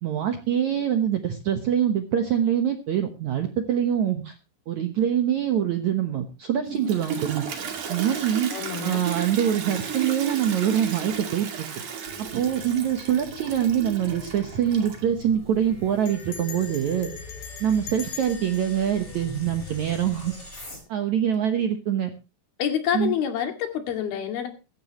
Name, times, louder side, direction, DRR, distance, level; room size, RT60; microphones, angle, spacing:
voice 1, 0.0-4.3 4.7-7.4 7.9-8.5 8.8-11.7 12.3-17.1 17.6-20.3 20.9-22.1 22.9-23.1, right 9 dB, 80° right, 6 dB, 1.7 m, -24 dB
Toilet flush, 6.6-15.2, right 7 dB, 50° right, 3.4 m, -34 dB
voice 2, 8.5-9.0 22.6-24.5, left 9 dB, 60° left, 5 dB, 4.0 m, -27 dB
sound 1, 12.0-20.8, left 2 dB, 15° left, 5.7 m, -42 dB
Bell, 16.1-20.1, left 7 dB, 85° left, 4.8 m, -42 dB
16.5 x 14.5 x 3.0 m, 0.30 s
omnidirectional pair, 5.2 m